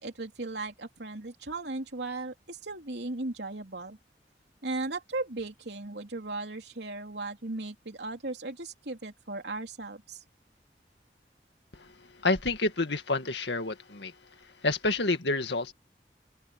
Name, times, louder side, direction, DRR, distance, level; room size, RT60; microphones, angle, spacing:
voice 1, 0.0-4.0 4.6-10.2, right 2 dB, 85° right, 3.2 m, -37 dB
voice 2, 12.2-14.1 14.6-15.7, left 2 dB, 90° left, 2.1 m, -28 dB
open air
head